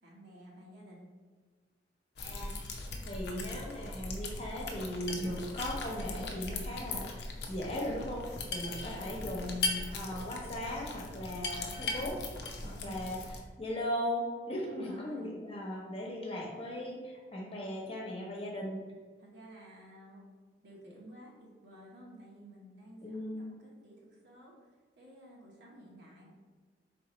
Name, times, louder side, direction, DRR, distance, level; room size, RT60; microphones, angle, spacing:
voice 1, 0.0-1.1 8.6-9.2 11.8-12.1 12.6-13.0 14.6-15.3 19.2-20.2 20.6-24.7 25.0-26.3, right 1 dB, 70° right, -4 dB, 1.1 m, -53 dB
sound 1, 2.2-13.4, left 3 dB, 65° left, 0.6 m, -39 dB
voice 2, 2.2-2.6 3.0-7.0 7.5-12.2 12.6-18.8 23.0-23.4, left 1 dB, 35° left, -1 dB, 1.0 m, -38 dB
4.8 x 3.6 x 3.1 m, 1.4 s
head